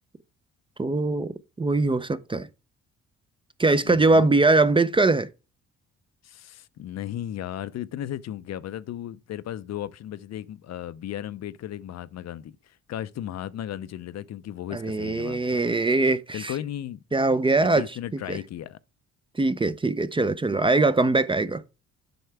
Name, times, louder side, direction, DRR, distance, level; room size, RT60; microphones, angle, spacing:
voice 1, 0.8-1.3 1.6-2.5 3.6-5.3 14.7-16.5 17.1-17.8 18.3-18.4 19.3-21.6, right 3 dB, 15° right, 0.5 m, -22 dB
voice 2, 3.8-4.3 6.2-15.6 16.3-17.0 17.7-18.8, left 11 dB, 60° left, 0.6 m, -35 dB
7.9 x 5.6 x 3.4 m
cardioid pair, 90°, 30 cm